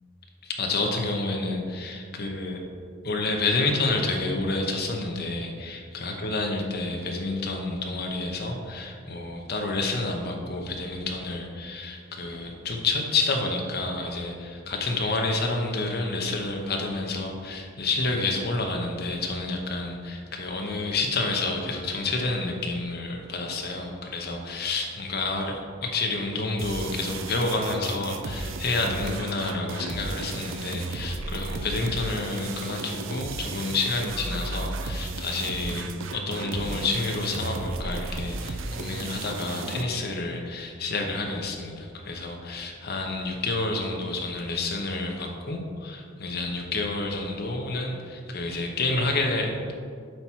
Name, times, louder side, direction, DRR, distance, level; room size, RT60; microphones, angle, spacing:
voice 1, 0.4-2.6 3.0-49.6, left 3 dB, 50° left, 2 dB, 0.9 m, -29 dB
sound 1, 26.6-39.8, right 3 dB, 70° right, 0.5 m, -34 dB
7.7 x 4.5 x 4.6 m, 2.2 s
head